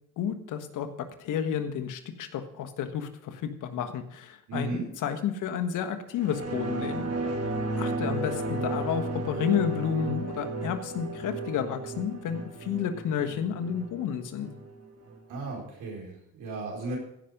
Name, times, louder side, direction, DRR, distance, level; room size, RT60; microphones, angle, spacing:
voice 1, 0.2-7.1 7.8-14.5, left 8 dB, 80° left, 8 dB, 1.4 m, -31 dB
voice 2, 4.5-4.8 15.3-17.0, right 3 dB, 85° right, -2 dB, 4.9 m, -35 dB
sound 1, 6.2-15.2 15.5-15.6, right 2 dB, 55° right, 2.3 m, -33 dB
15.5 x 6.0 x 5.2 m, 0.79 s
cardioid pair, 90°, 30 cm